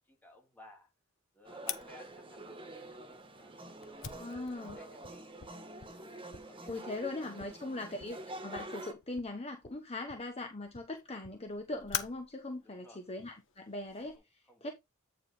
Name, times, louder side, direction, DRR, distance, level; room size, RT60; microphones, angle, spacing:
voice 1, 0.1-0.9 1.3-5.2 5.7-6.9 7.2-7.7 12.6-13.0 14.1-14.7, left 1 dB, 10° left, 3.2 m, -59 dB
sound 1, 1.4-8.9, right 1 dB, 25° right, 1.6 m, -47 dB
Fire, 1.7-14.2, left 9 dB, 65° left, 1.1 m, -47 dB
voice 2, 4.2-4.8 6.7-14.7, left 2 dB, 30° left, 1.1 m, -40 dB
9.2 x 5.0 x 3.9 m
head